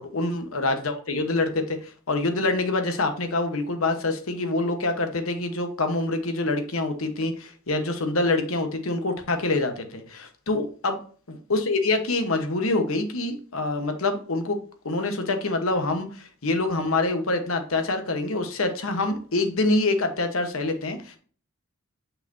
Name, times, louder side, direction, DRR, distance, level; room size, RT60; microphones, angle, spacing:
voice 1, 0.0-11.0 11.3-14.6 14.8-21.2, left 2 dB, 80° left, 6 dB, 1.2 m, -26 dB
6.6 x 5.6 x 2.7 m, 0.42 s
head